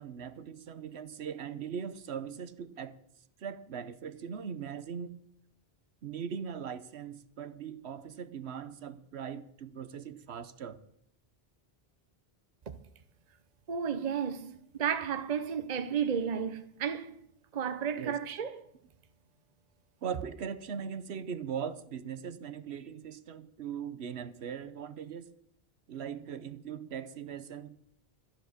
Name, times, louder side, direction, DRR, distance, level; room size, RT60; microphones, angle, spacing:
voice 1, 0.0-3.0 3.4-5.2 6.0-10.8 18.0-18.2 20.0-25.3 25.9-27.8, right 7 dB, 80° right, 1.1 m, -40 dB
voice 2, 13.7-17.2 17.5-18.5, right 7 dB, 45° right, 0.9 m, -32 dB
13.0 x 10.0 x 6.6 m
omnidirectional pair, 1.1 m